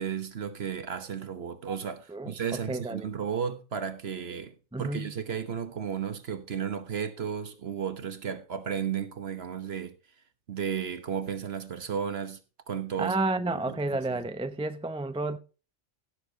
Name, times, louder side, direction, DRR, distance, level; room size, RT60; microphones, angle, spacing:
voice 1, 0.0-9.9 10.5-12.4 12.7-13.1 13.5-14.2, right 7 dB, 50° right, 1.3 m, -34 dB
voice 2, 2.7-3.1 4.7-5.1 13.0-15.4, right 2 dB, 5° right, 0.4 m, -31 dB
16.0 x 6.8 x 4.0 m
omnidirectional pair, 1.4 m